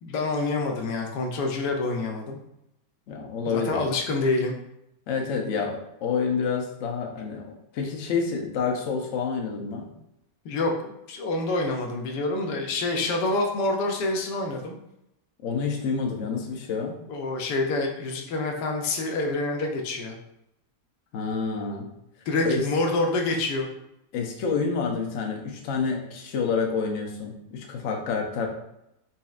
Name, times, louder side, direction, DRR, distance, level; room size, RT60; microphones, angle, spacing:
voice 1, 0.0-2.4 3.5-4.5 10.4-14.8 17.1-20.2 22.3-23.7, left 2 dB, 85° left, 2 dB, 1.2 m, -27 dB
voice 2, 3.1-3.8 5.1-9.9 15.4-17.0 21.1-21.9 22.4-22.7 24.1-28.5, left 5 dB, 60° left, 1 dB, 0.9 m, -28 dB
4.1 x 3.3 x 2.4 m, 0.83 s
omnidirectional pair, 1.8 m